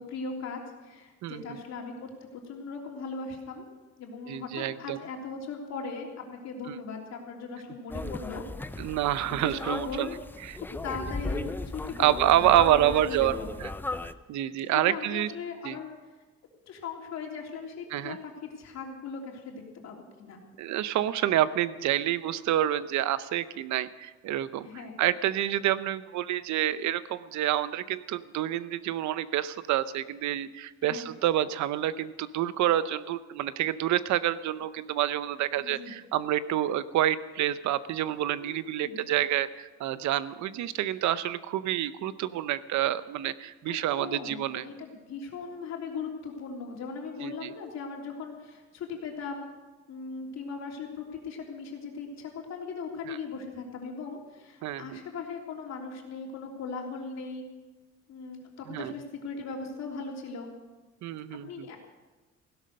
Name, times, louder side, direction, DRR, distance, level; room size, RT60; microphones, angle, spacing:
voice 1, 0.0-3.7 4.0-8.4 8.7-8.8 9.2-10.1 10.5-13.5 14.7-15.9 16.7-20.4 24.6-25.0 30.8-31.1 35.6-35.9 38.3-39.0 43.7-49.5 49.9-57.4 58.1-60.5 61.3-61.8, left 4 dB, 65° left, 0 dB, 3.3 m, -39 dB
voice 2, 1.2-1.6 4.3-5.0 6.7-6.8 8.8-10.1 10.5-10.6 12.0-13.7 14.3-15.3 15.6-15.8 17.9-18.2 20.6-24.7 25.0-44.6 47.2-47.5 54.6-55.0 58.7-58.9 61.0-61.7, right 12 dB, 70° right, 15 dB, 0.7 m, -28 dB
sound 1, 7.9-14.1, left 2 dB, 5° left, 0.4 m, -36 dB
16.5 x 12.0 x 6.5 m, 1.2 s
cardioid pair, 140°, 29 cm